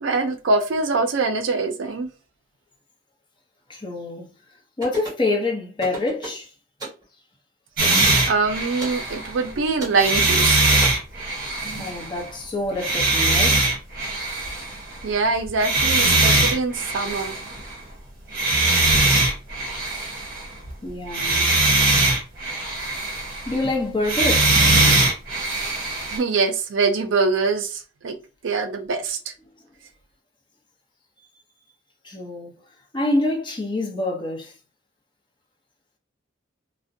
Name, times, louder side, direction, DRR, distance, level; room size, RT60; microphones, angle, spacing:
voice 1, 0.0-2.1 8.3-10.6 15.0-17.3 26.1-28.2 28.4-29.3, right 4 dB, 75° right, 0.4 m, -23 dB
voice 2, 3.7-4.3 4.8-6.5 8.2-8.3 11.8-13.7 20.8-21.5 23.5-24.6 32.0-32.5 32.9-34.5, left 2 dB, 25° left, 0.6 m, -26 dB
sound 1, 4.8-5.3 5.8-6.4 6.8-7.0 7.8-8.0 8.8-9.0 9.8-10.0 10.8-10.9, right 2 dB, 20° right, 1.0 m, -34 dB
sound 2, 7.8-9.5 9.9-12.3 12.8-15.1 15.5-17.7 18.3-20.7 21.1-23.7 24.0-26.2, right 2 dB, 50° right, 0.8 m, -21 dB
2.5 x 2.1 x 2.5 m
head